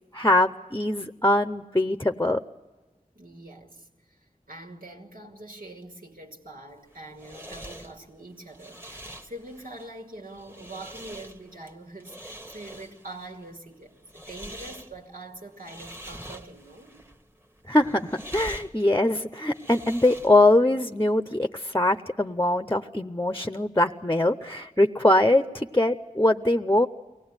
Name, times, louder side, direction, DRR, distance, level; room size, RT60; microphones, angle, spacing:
voice 1, 0.1-2.4 17.7-26.9, left 1 dB, 15° left, 0.7 m, -22 dB
voice 2, 3.1-4.2 4.5-17.0, right 2 dB, 85° right, 2.7 m, -44 dB
sound 1, 6.7-20.6, equal, 15° right, 1.4 m, -45 dB
24.0 x 18.0 x 9.7 m
wide cardioid pair, 50°, 14 cm